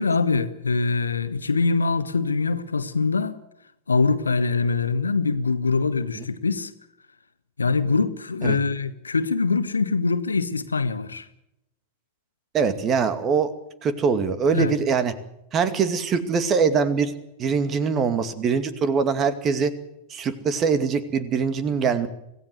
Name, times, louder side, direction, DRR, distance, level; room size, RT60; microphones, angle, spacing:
voice 1, 0.0-3.4 3.9-6.7 7.6-11.3 14.5-14.7, left 4 dB, 75° left, 1.5 m, -23 dB
voice 2, 12.5-13.5 13.8-15.1 15.5-17.1 17.4-19.7 20.1-22.1, right 5 dB, 30° right, 2.3 m, -23 dB
25.5 x 16.5 x 7.9 m
figure-of-eight pair, 90°, 0 cm